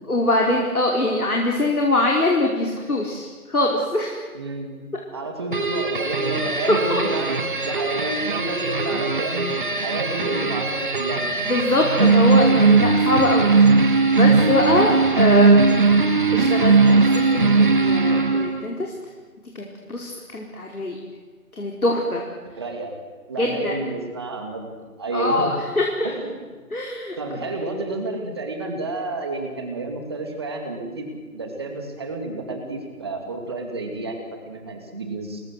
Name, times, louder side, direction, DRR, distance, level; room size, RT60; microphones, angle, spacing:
voice 1, 0.1-4.2 5.5-5.6 6.7-7.0 11.5-13.6 14.1-15.8 16.3-18.9 19.5-21.0 21.5-22.2 23.4-23.8 25.1-26.1 26.7-27.2, left 1 dB, 70° left, 0 dB, 5.0 m, -22 dB
voice 2, 4.3-9.5 9.8-11.3 22.6-22.9 23.3-25.5 26.0-26.3 27.2-35.4, right 2 dB, 15° right, 4 dB, 2.5 m, -30 dB
sound 1, 5.5-18.7, right 4 dB, 35° right, 2.1 m, -19 dB
28.5 x 22.0 x 8.0 m, 1.4 s
figure-of-eight pair, 170°, 45 cm